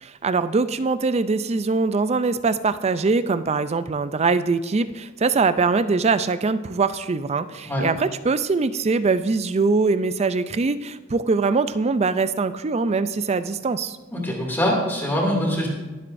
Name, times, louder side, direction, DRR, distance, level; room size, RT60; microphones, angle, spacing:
voice 1, 0.0-14.0, right 4 dB, 30° right, 13 dB, 0.4 m, -22 dB
voice 2, 14.1-15.7, equal, 10° left, -2 dB, 2.5 m, -23 dB
21.5 x 7.6 x 2.6 m, 1.2 s
head